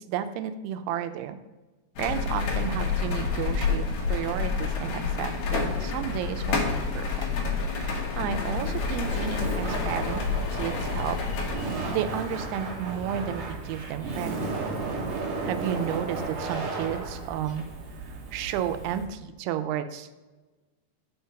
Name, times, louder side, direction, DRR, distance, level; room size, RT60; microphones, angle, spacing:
voice 1, 0.0-1.4 2.0-7.2 7.7-10.2 10.5-11.2 11.7-14.9 15.4-17.7 18.3-20.1, right 9 dB, 85° right, 9 dB, 2.6 m, -32 dB
sound 1, 2.0-11.6, left 5 dB, 70° left, 2.6 m, -29 dB
sound 2, 4.7-12.8, left 6 dB, 85° left, 2.5 m, -44 dB
Laughter, 8.5-19.1, right 3 dB, 70° right, 1.6 m, -34 dB
5.7 x 5.2 x 5.7 m, 1.2 s
omnidirectional pair, 4.6 m